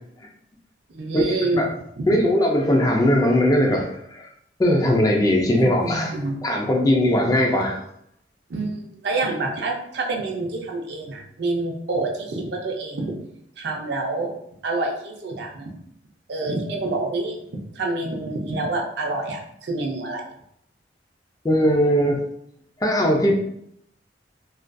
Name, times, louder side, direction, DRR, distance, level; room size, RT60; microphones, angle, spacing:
voice 1, 0.9-1.6 2.0-2.1 5.6-6.4 8.5-13.2 13.6-14.3 14.6-15.7 16.3-20.2, right 2 dB, 65° right, 0 dB, 0.5 m, -27 dB
voice 2, 2.1-4.2 4.6-6.1 6.4-7.8 21.4-22.2 22.8-23.3, left 1 dB, 20° left, 0 dB, 0.4 m, -19 dB
2.4 x 2.4 x 2.2 m, 0.73 s
head